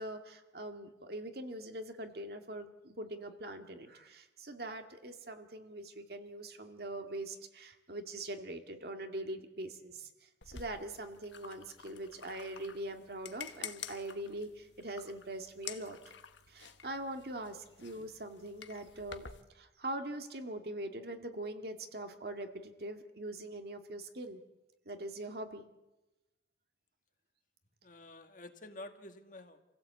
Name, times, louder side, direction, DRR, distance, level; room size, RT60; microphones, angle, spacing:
voice 1, 0.0-16.0 16.5-24.4 24.9-25.6, right 1 dB, 55° right, 6 dB, 2.0 m, -42 dB
sound 1, 10.4-19.4, left 8 dB, 90° left, 1.3 m, -50 dB
voice 2, 27.8-29.6, left 2 dB, 45° left, 7 dB, 1.7 m, -49 dB
27.5 x 16.0 x 8.3 m, 1.0 s
head